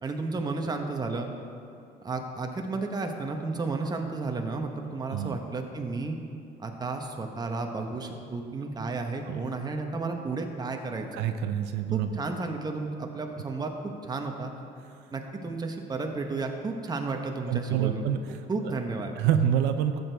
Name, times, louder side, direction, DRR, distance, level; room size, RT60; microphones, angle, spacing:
voice 1, 0.0-1.3 2.0-6.2 6.6-11.1 11.9-14.5 15.1-18.1 18.5-19.2, right 3 dB, 25° right, 3 dB, 1.0 m, -32 dB
voice 2, 11.1-12.2 17.5-18.2 19.2-20.0, right 9 dB, 85° right, 8 dB, 0.5 m, -26 dB
13.5 x 8.0 x 3.4 m, 2.5 s
cardioid pair, 110°, 17 cm